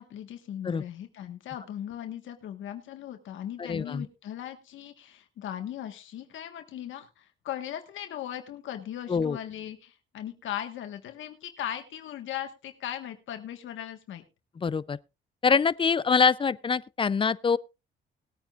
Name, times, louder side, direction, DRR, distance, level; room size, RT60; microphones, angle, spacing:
voice 1, 0.0-14.2, left 11 dB, 75° left, 1.6 m, -38 dB
voice 2, 3.6-4.1 9.1-9.4 14.6-15.0 15.4-17.6, left 5 dB, 25° left, 0.5 m, -24 dB
20.0 x 9.0 x 2.5 m
cardioid pair, 90°, 20 cm